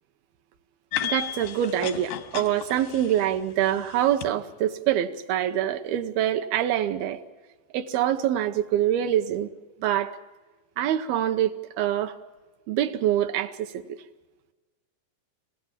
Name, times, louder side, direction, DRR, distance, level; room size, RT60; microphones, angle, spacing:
sound 1, 0.9-4.3, left 10 dB, 90° left, 3.4 m, -34 dB
voice 1, 1.0-7.2 7.7-9.5 9.8-10.2 10.8-12.2 12.7-14.0, right 11 dB, 75° right, 2.7 m, -25 dB
28.0 x 16.0 x 7.4 m
omnidirectional pair, 4.5 m